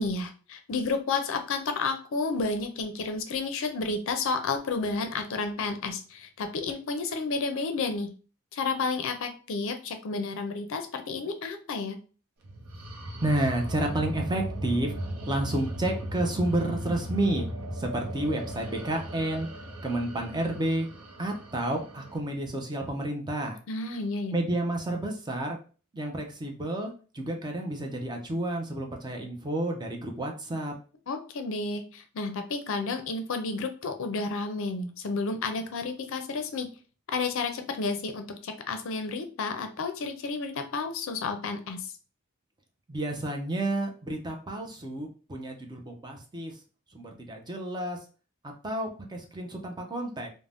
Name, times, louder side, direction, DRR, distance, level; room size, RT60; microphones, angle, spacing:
voice 1, 0.0-8.1 8.5-12.0 23.7-24.4 31.1-36.7 37.1-41.9, left 4 dB, 60° left, 7 dB, 0.4 m, -31 dB
sound 1, 12.4-22.2, right 1 dB, 90° right, 0.6 m, -37 dB
voice 2, 13.2-15.0 15.3-17.5 17.7-19.5 19.8-20.9 21.2-23.6 24.3-25.6 25.9-30.7 42.9-46.5 46.9-48.0 48.6-50.3, right 1 dB, 20° right, 2 dB, 0.4 m, -30 dB
2.5 x 2.0 x 3.3 m, 0.37 s
head